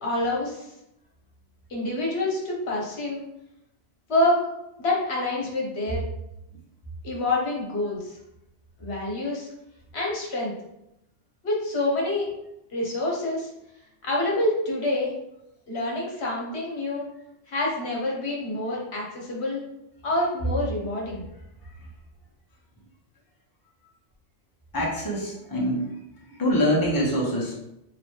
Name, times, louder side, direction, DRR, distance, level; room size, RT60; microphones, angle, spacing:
voice 1, 0.0-0.7 1.7-3.2 4.1-4.5 4.8-6.0 7.0-8.2 8.8-9.5 9.9-10.5 11.4-12.3 12.7-13.5 14.0-15.1 15.7-17.1 17.5-19.6 20.0-21.2, left 2 dB, 65° left, -3 dB, 1.3 m, -27 dB
voice 2, 24.7-25.9 26.4-27.5, equal, 20° left, -4 dB, 1.0 m, -24 dB
3.0 x 3.0 x 4.6 m, 0.85 s
omnidirectional pair, 1.2 m